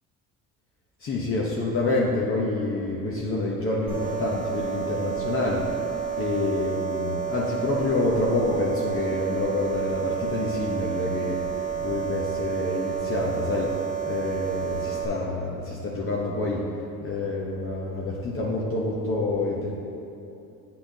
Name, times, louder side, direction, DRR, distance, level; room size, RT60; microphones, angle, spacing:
voice 1, 1.0-5.7 6.2-11.4 11.8-13.8 14.0-16.7 17.0-19.7, left 2 dB, 40° left, -4 dB, 0.8 m, -27 dB
sound 1, 3.9-15.1, right 8 dB, 25° right, 1.3 m, -30 dB
8.4 x 5.7 x 2.7 m, 2.9 s
cardioid pair, 115°, 35 cm